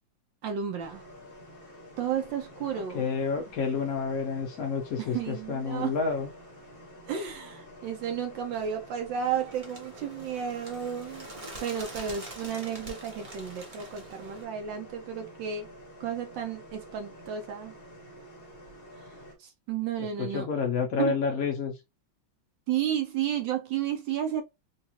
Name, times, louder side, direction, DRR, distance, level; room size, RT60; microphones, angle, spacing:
voice 1, 0.4-1.0 2.0-3.0 5.0-5.9 7.1-11.3 11.6-15.7 16.0-17.7 19.4-20.5 21.0-21.1 22.7-24.4, right 8 dB, 70° right, 1.3 m, -32 dB
sound 1, 0.8-19.4, left 1 dB, 35° left, 1.1 m, -49 dB
voice 2, 2.7-6.3 20.0-21.8, left 5 dB, 70° left, 0.8 m, -29 dB
Bird, 9.1-14.4, right 2 dB, 40° right, 0.5 m, -45 dB
3.9 x 2.4 x 2.8 m
omnidirectional pair, 2.2 m